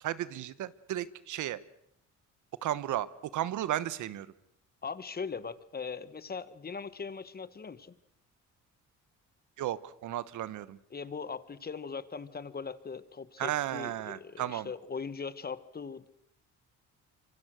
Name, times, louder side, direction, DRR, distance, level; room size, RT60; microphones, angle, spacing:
voice 1, 0.0-1.6 2.6-4.3 9.6-10.8 13.4-14.7, right 12 dB, 75° right, 17 dB, 1.1 m, -34 dB
voice 2, 4.8-8.0 10.9-16.1, left 5 dB, 30° left, 15 dB, 1.3 m, -40 dB
26.0 x 24.5 x 6.3 m, 0.74 s
cardioid pair, 90°, 30 cm